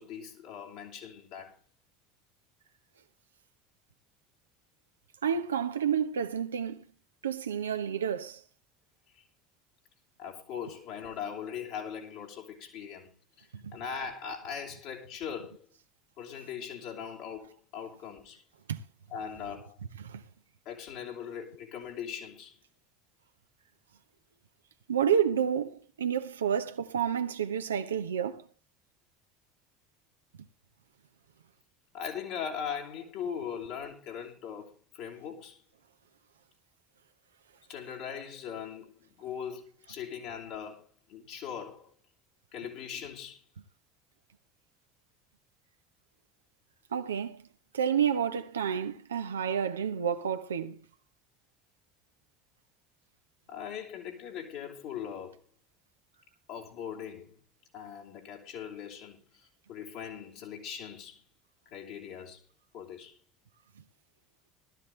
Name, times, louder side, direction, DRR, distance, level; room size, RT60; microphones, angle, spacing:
voice 1, 0.0-1.6 9.1-9.2 10.2-15.7 16.2-18.4 19.1-19.8 20.7-22.6 31.9-35.6 37.7-41.9 42.5-43.4 48.3-48.4 53.5-55.4 56.5-57.3 57.7-61.2 61.7-62.4 62.7-63.2, left 7 dB, 65° left, 3.5 m, -40 dB
voice 2, 5.2-6.9 7.2-8.4 13.5-13.8 18.7-18.8 20.0-20.2 24.9-28.5 46.9-47.4 47.7-50.8, right 8 dB, 85° right, 0.8 m, -30 dB
18.5 x 13.0 x 3.2 m
hypercardioid pair, 70°, 0 cm